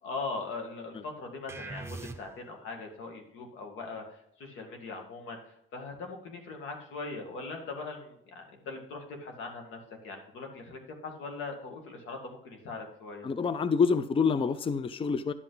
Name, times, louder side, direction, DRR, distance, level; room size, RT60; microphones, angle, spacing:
voice 1, 0.0-9.8 10.0-13.3, left 3 dB, 90° left, 2 dB, 2.0 m, -40 dB
sound 1, 1.5-2.6, right 2 dB, 15° right, 0.9 m, -41 dB
voice 2, 13.2-15.3, left 5 dB, 25° left, 13 dB, 0.5 m, -27 dB
11.0 x 5.8 x 3.9 m, 0.74 s
cardioid pair, 90°, 20 cm